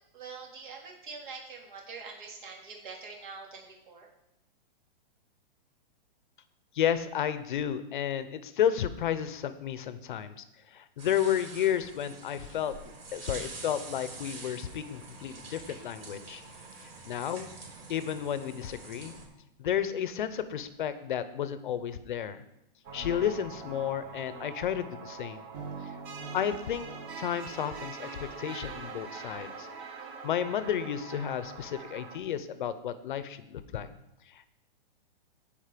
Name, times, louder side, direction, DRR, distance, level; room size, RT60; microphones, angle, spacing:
voice 1, 0.0-4.1, right 4 dB, 55° right, -1 dB, 3.6 m, -44 dB
voice 2, 6.7-16.4 16.8-17.5 17.9-19.1 19.6-22.4 22.9-25.4 25.8-26.0 26.3-29.7 30.2-33.9 34.3-34.5, left 9 dB, 55° left, 13 dB, 0.8 m, -32 dB
sound 1, 11.0-19.2, right 3 dB, 85° right, 4.4 m, -46 dB
sound 2, 22.8-32.2, right 5 dB, 25° right, 1.2 m, -43 dB
16.0 x 5.3 x 5.1 m, 0.86 s
hypercardioid pair, 165°, 29 cm